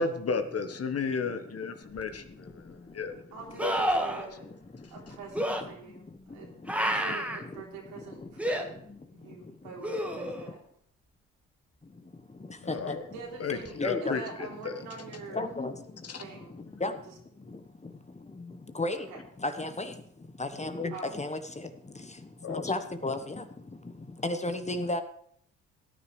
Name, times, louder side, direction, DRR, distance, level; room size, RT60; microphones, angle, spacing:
voice 1, 0.0-3.2 3.6-4.0 12.6-13.0 13.4-14.8 15.3-15.4 16.1-16.2 22.4-22.6, left 4 dB, 40° left, 9 dB, 1.3 m, -33 dB
sound 1, 2.0-2.1 3.6-4.3 5.3-5.6 6.7-7.4 8.4-8.6 9.8-10.5 13.7-13.8, equal, 5° right, 1.7 m, -29 dB
voice 2, 3.3-4.5 4.9-6.1 6.3-6.5 6.8-8.8 9.1-10.6 13.1-15.4 16.2-16.6 19.1-19.2 20.9-21.2, right 4 dB, 75° right, -2 dB, 3.5 m, -44 dB
voice 3, 13.8-14.2 15.3-15.7 16.8-16.9 18.7-19.1 19.4-19.9 20.4-21.7 22.5-23.4 24.2-25.0, left 2 dB, 15° left, 8 dB, 1.2 m, -32 dB
17.5 x 10.0 x 3.3 m, 0.66 s
hypercardioid pair, 50°, 39 cm